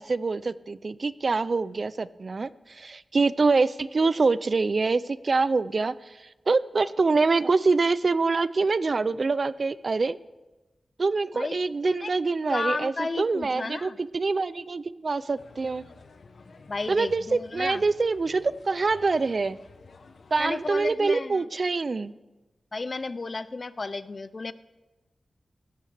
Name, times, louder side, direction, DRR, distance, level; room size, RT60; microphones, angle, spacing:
voice 1, 0.0-10.2 11.0-15.8 16.9-19.6 20.3-22.1, right 3 dB, 50° right, 17 dB, 0.4 m, -25 dB
voice 2, 12.5-14.0 16.7-17.8 20.4-21.4 22.7-24.5, left 3 dB, 40° left, 15 dB, 0.5 m, -33 dB
sound 1, 15.4-20.9, left 4 dB, 65° left, 0.9 m, -52 dB
17.0 x 13.5 x 3.4 m, 1.1 s
wide cardioid pair, 100°, 0 cm